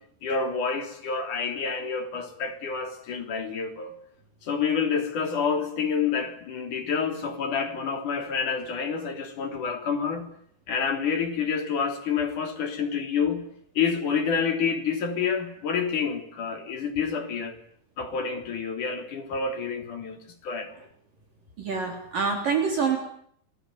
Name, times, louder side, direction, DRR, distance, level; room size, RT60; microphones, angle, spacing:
voice 1, 0.2-3.9 4.4-10.3 10.7-13.4 13.8-17.6 18.0-20.7, left 6 dB, 45° left, 4.6 m, -28 dB
voice 2, 21.6-23.0, right 5 dB, 50° right, 5.0 m, -26 dB
29.0 x 21.5 x 9.6 m
omnidirectional pair, 5.4 m